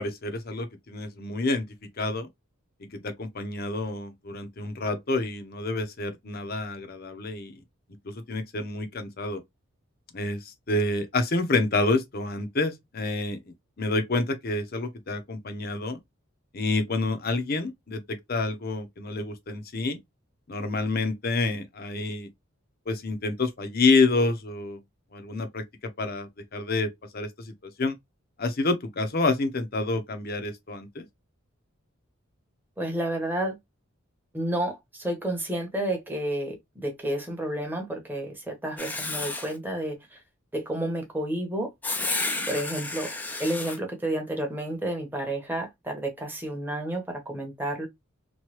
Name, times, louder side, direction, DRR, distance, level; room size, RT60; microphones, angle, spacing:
voice 1, 0.0-1.7 2.0-2.3 2.9-7.6 8.0-9.4 10.1-13.4 13.8-16.0 16.5-20.0 20.5-22.3 22.9-24.8 25.1-25.6 26.0-27.5 27.8-28.0 28.4-31.1, left 3 dB, 45° left, 0.7 m, -28 dB
voice 2, 32.8-33.6 34.3-40.0 40.5-41.7 42.5-43.1 43.4-47.9, right 1 dB, 10° right, 0.9 m, -30 dB
Writing, 38.8-39.5 41.8-43.8, left 2 dB, 10° left, 0.4 m, -31 dB
3.1 x 2.2 x 3.0 m
head